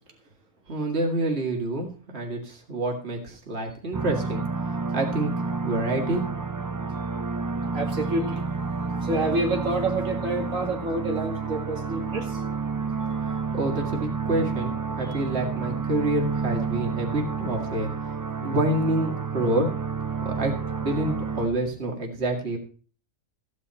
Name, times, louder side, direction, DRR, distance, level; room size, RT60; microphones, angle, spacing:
voice 1, 0.7-4.4 4.9-6.2 13.5-17.9 18.4-19.7 20.2-20.5 20.8-22.6, right 1 dB, 55° right, 1 dB, 2.4 m, -27 dB
sound 1, 3.9-21.5, right 5 dB, 35° right, 0.3 m, -30 dB
voice 2, 7.7-8.7 9.0-12.4 15.0-15.2, right 2 dB, 85° right, 1 dB, 2.7 m, -28 dB
15.0 x 9.5 x 4.3 m, 0.41 s
omnidirectional pair, 1.3 m